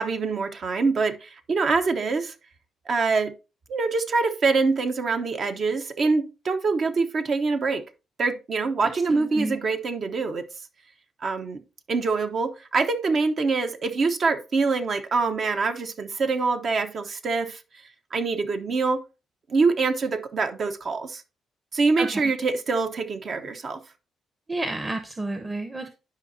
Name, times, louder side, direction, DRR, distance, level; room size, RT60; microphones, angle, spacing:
voice 1, 0.0-2.3 2.9-3.3 3.7-7.8 8.2-10.5 11.2-11.6 11.9-17.6 18.1-19.0 19.5-21.2 21.7-23.8, right 4 dB, 55° right, 1.0 m, -25 dB
voice 2, 8.8-9.6 22.0-22.3 24.5-25.9, right 2 dB, 25° right, 0.9 m, -31 dB
11.5 x 5.1 x 2.7 m
supercardioid pair, 65°, 0 cm